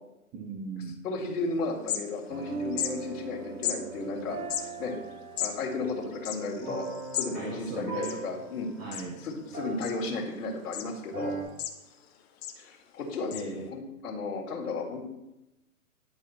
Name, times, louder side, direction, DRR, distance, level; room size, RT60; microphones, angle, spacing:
voice 1, 0.3-1.0 7.3-8.2 8.8-9.2 13.3-13.7, right 4 dB, 20° right, 1 dB, 0.8 m, -39 dB
voice 2, 1.0-4.4 4.8-4.9 5.4-6.8 7.2-8.7 9.2-11.3 12.6-15.1, left 3 dB, 60° left, -3 dB, 2.4 m, -34 dB
sound 1, 1.3-1.4 1.6-2.4 2.7-2.9 3.6-3.8 4.4-7.3 7.6-7.7 7.9-8.6 8.9-9.3 9.8-10.3 10.7-10.9 11.3-12.0 12.4-12.6 13.3-13.4, left 10 dB, 45° left, 0.9 m, -34 dB
sound 2, 2.3-10.7 11.1-11.4, right 5 dB, 80° right, 2.9 m, -40 dB
10.0 x 4.9 x 4.2 m, 0.92 s
hypercardioid pair, 135°, 44 cm